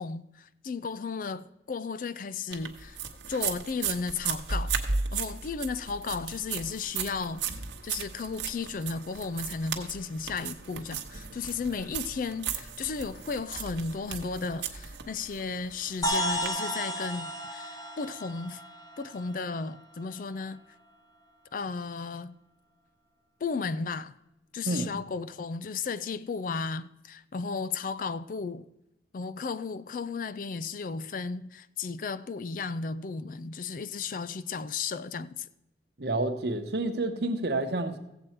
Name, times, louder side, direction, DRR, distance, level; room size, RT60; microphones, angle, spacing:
voice 1, 0.0-3.0 3.3-4.8 5.1-7.5 7.8-18.6 19.0-20.6 21.5-22.3 23.4-24.2 24.5-28.7 29.1-35.5, left 4 dB, 50° left, 0.4 m, -34 dB
sound 1, 2.5-16.5, right 6 dB, 85° right, 1.0 m, -36 dB
sound 2, 16.0-19.8, equal, 20° left, 1.2 m, -33 dB
voice 2, 36.0-38.0, right 2 dB, 65° right, 1.0 m, -29 dB
15.5 x 7.7 x 4.4 m
head